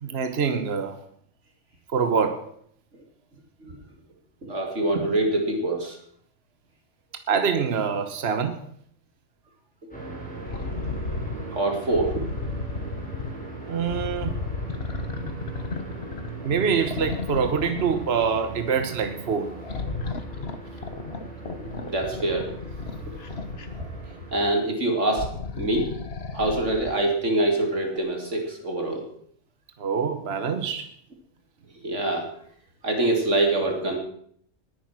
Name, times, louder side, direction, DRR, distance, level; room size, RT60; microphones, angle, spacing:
voice 1, 0.0-1.0 1.9-2.4 7.3-8.6 13.7-14.3 16.4-19.5 29.8-30.9, right 6 dB, 60° right, 8 dB, 1.4 m, -25 dB
voice 2, 4.4-6.0 11.5-12.2 21.5-22.5 24.3-25.3 25.5-26.0 26.3-29.1 31.8-32.3 32.8-34.0, right 2 dB, 75° right, 2 dB, 3.3 m, -25 dB
sound 1, 9.9-24.6, right 4 dB, 5° left, 4.3 m, -39 dB
sound 2, 10.5-11.4 11.9-13.4 13.9-16.5 16.9-18.4 19.6-24.1 25.0-27.0 28.0-28.1, left 4 dB, 55° left, 1.5 m, -33 dB
20.0 x 9.4 x 6.1 m, 0.65 s
omnidirectional pair, 1.3 m